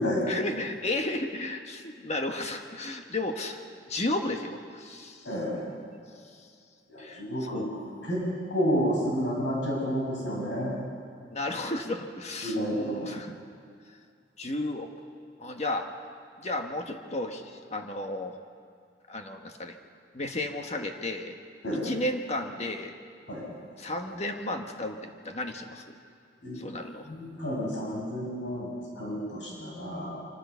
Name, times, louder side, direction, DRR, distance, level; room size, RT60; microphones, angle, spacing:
voice 1, 0.3-3.6 3.9-6.0 7.0-7.7 11.3-13.4 14.4-14.9 15.4-15.9 16.4-18.4 19.1-19.8 20.1-21.3 21.7-22.9 23.8-26.0 26.5-27.0, left 2 dB, 40° left, 4 dB, 1.4 m, -33 dB
voice 2, 5.2-5.7 6.9-10.8 12.4-13.1 21.6-21.9 23.3-23.4 26.4-26.6 27.1-28.7 29.0-30.3, equal, 90° left, -3 dB, 6.7 m, -30 dB
25.5 x 15.0 x 7.0 m, 2.3 s
head